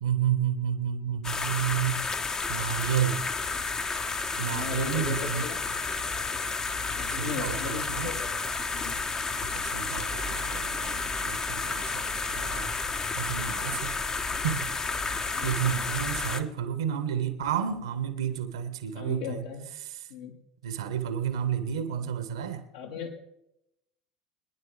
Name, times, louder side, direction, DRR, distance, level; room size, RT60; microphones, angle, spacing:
voice 1, 0.0-2.1 2.5-3.2 4.4-5.4 7.1-8.2 9.4-12.8 13.1-14.0 14.4-14.7 15.0-19.4 19.8-20.0 20.6-22.6, right 9 dB, 70° right, 1.6 m, -31 dB
sound 1, 1.2-16.4, left 4 dB, 25° left, 1.2 m, -31 dB
voice 2, 4.5-5.6 6.9-8.3 8.7-9.0 15.3-15.6 18.9-19.6 20.1-20.3 22.7-23.2, left 7 dB, 70° left, 2.9 m, -37 dB
23.0 x 10.5 x 3.5 m
figure-of-eight pair, 70°, 3 cm